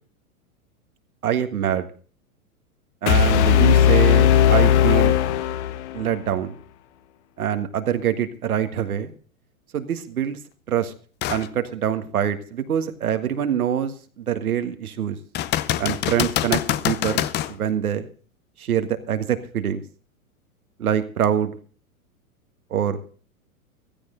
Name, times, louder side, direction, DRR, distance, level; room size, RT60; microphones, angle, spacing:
voice 1, 1.2-1.9 3.0-5.2 5.9-6.5 7.4-9.1 9.7-10.4 10.7-10.9 11.3-15.2 15.8-18.1 18.6-19.8 20.8-21.6 22.7-23.0, right 9 dB, 75° right, 9 dB, 1.8 m, -25 dB
sound 1, 3.1-6.1, left 9 dB, 50° left, 1.3 m, -17 dB
sound 2, 11.2-11.5 12.1-12.2 15.3-17.6 21.2-21.3, left 13 dB, 25° left, 0.6 m, -25 dB
16.0 x 13.5 x 3.8 m, 0.41 s
hypercardioid pair, 110°, 43 cm